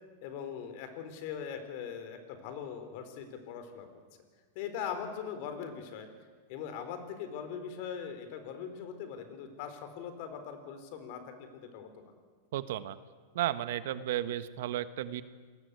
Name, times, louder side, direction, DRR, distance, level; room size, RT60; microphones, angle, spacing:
voice 1, 0.2-3.9 4.5-6.1 6.5-12.0, left 7 dB, 50° left, 8 dB, 4.2 m, -41 dB
voice 2, 12.5-13.0 13.3-15.2, right 12 dB, 65° right, 12 dB, 1.3 m, -33 dB
27.0 x 20.0 x 8.3 m, 1.5 s
supercardioid pair, 150°, 0 cm